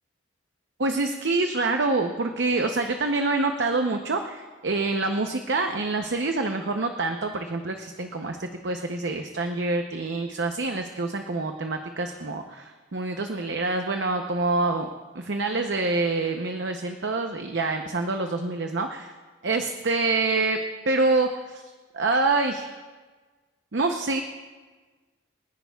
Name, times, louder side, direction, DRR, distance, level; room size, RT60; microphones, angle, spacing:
voice 1, 0.8-14.9 15.1-19.1 19.4-20.6 20.9-21.6 21.9-22.7 23.7-24.2, right 3 dB, 75° right, 5 dB, 0.7 m, -26 dB
28.0 x 10.5 x 2.3 m, 1.4 s
head